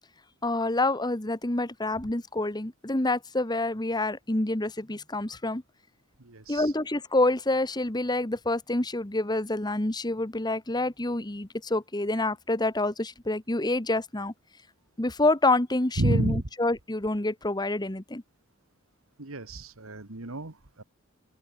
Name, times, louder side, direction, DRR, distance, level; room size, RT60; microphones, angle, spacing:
voice 1, 0.4-5.6 6.5-14.3 15.0-18.2, left 2 dB, 20° left, 1.3 m, -27 dB
voice 2, 6.2-6.7 16.0-16.4 19.2-20.8, right 1 dB, 80° right, 2.0 m, -30 dB
open air
head